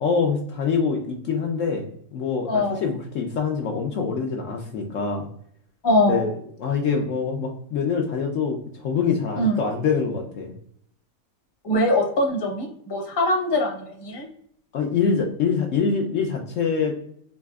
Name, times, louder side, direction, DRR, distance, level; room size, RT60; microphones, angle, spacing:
voice 1, 0.0-5.3 6.1-6.3 6.6-10.5 14.7-16.9, left 5 dB, 65° left, 2 dB, 0.9 m, -25 dB
voice 2, 2.5-2.8 5.8-6.2 9.4-9.6 11.6-14.3, left 1 dB, 25° left, -1 dB, 0.7 m, -22 dB
4.1 x 2.6 x 2.3 m, 0.65 s
omnidirectional pair, 1.6 m